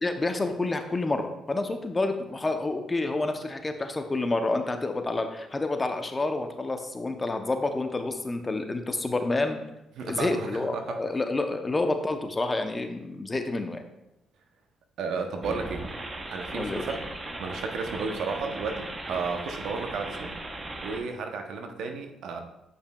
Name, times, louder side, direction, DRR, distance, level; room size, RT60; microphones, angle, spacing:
voice 1, 0.0-9.6 10.0-13.8 16.5-16.8, left 2 dB, 20° left, 6 dB, 0.7 m, -29 dB
voice 2, 10.0-11.0 15.0-15.9 16.3-17.0 17.4-20.3 20.8-22.4, right 4 dB, 75° right, 5 dB, 0.7 m, -33 dB
sound 1, 15.4-21.0, right 2 dB, 25° right, 0.8 m, -37 dB
8.6 x 5.5 x 2.3 m, 0.89 s
cardioid pair, 90°, 0 cm